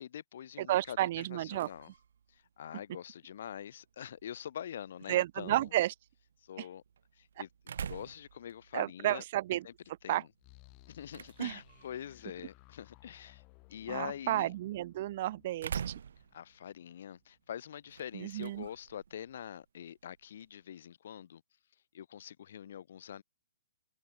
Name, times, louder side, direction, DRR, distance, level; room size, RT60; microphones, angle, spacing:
voice 1, 0.0-1.9 2.6-5.7 6.4-6.8 7.2-7.5 7.9-9.2 9.6-9.7 10.0-10.3 10.9-13.4 13.7-14.5 16.3-21.4 21.9-23.2, left 9 dB, 45° left, 3.3 m, -44 dB
voice 2, 0.6-1.7 5.1-5.9 6.6-6.7 7.4-7.5 8.7-9.7 10.1-10.2 11.4-11.6 13.9-16.0 18.1-18.7, right 14 dB, 30° right, 0.8 m, -32 dB
sound 1, 0.8-20.6, right 7 dB, 60° right, 4.8 m, -49 dB
sound 2, 10.4-17.2, left 32 dB, 20° left, 7.8 m, -61 dB
hypercardioid pair, 180°, 0 cm